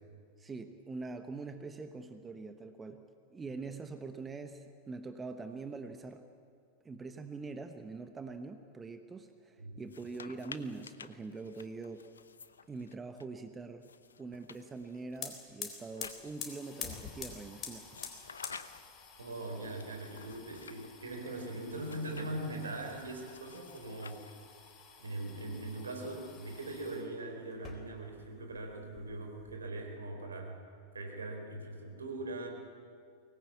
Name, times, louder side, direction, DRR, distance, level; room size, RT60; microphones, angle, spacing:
voice 1, 0.4-6.2 6.8-12.0 12.7-13.9 14.2-18.0, right 3 dB, 15° right, 8 dB, 1.2 m, -44 dB
sound 1, 9.8-13.2 13.8-16.7 17.9-19.0 19.8-20.9 21.8-24.6, left 6 dB, 70° left, 0.8 m, -52 dB
sound 2, 14.8-14.9 15.1-27.1 27.5-28.3 28.5-29.5, left 7 dB, 30° left, 3.9 m, -48 dB
voice 2, 19.2-24.2 25.0-30.6 30.9-32.5, right 2 dB, 75° right, 3 dB, 4.2 m, -41 dB
23.5 x 19.5 x 8.5 m, 2.3 s
figure-of-eight pair, 90°, 0 cm